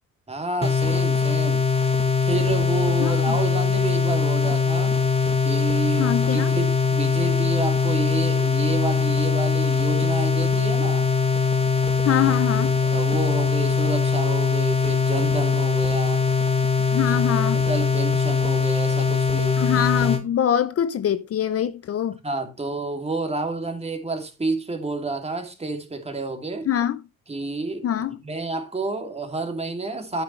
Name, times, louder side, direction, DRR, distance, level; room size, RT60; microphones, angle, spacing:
voice 1, 0.3-1.6 2.2-5.0 5.4-11.1 12.6-16.2 17.4-19.6 22.2-26.7 27.3-30.2, right 3 dB, 20° right, 2.7 m, -29 dB
sound 1, 0.6-20.2, left 5 dB, 20° left, 1.8 m, -21 dB
voice 2, 3.0-3.4 6.0-6.5 12.0-12.7 16.9-17.6 19.6-22.2 26.7-27.0 27.8-28.2, left 9 dB, 50° left, 0.7 m, -24 dB
10.5 x 9.2 x 3.2 m
cardioid pair, 90°, 30 cm